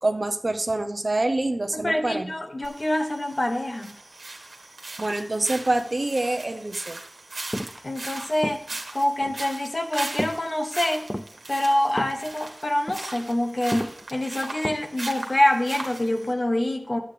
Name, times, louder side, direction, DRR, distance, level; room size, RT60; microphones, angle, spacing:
voice 1, 0.0-2.3 5.0-7.0, right 2 dB, 55° right, 7 dB, 0.8 m, -26 dB
voice 2, 1.7-3.9 7.8-8.6 8.9-11.0 11.5-17.0, left 1 dB, 50° left, 4 dB, 1.2 m, -25 dB
sound 1, 2.6-16.3, right 2 dB, 85° right, 1.5 m, -39 dB
sound 2, 7.5-7.8 8.4-8.8 9.2-9.4 10.2-10.5 10.9-11.4 12.0-12.3 12.7-13.0 13.7-14.0 14.6-15.0 15.3-15.4, equal, 10° left, 0.4 m, -31 dB
11.5 x 8.3 x 3.4 m, 0.80 s
wide cardioid pair, 45°, 0 cm